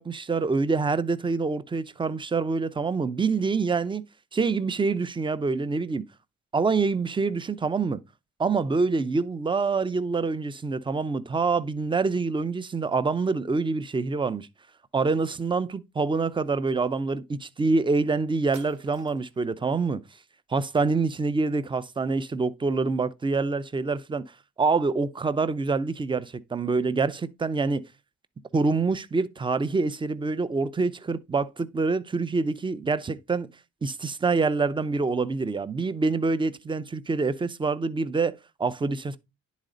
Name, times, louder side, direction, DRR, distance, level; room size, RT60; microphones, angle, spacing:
voice 1, 0.0-4.0 4.3-6.0 6.5-8.0 8.4-14.5 14.9-20.0 20.5-24.2 24.6-27.8 28.5-33.5 33.8-39.2, right 4 dB, 15° right, 0.6 m, -26 dB
sound 1, 18.5-19.4, right 7 dB, 75° right, 2.0 m, -50 dB
10.0 x 4.1 x 3.9 m
cardioid pair, 90°, 30 cm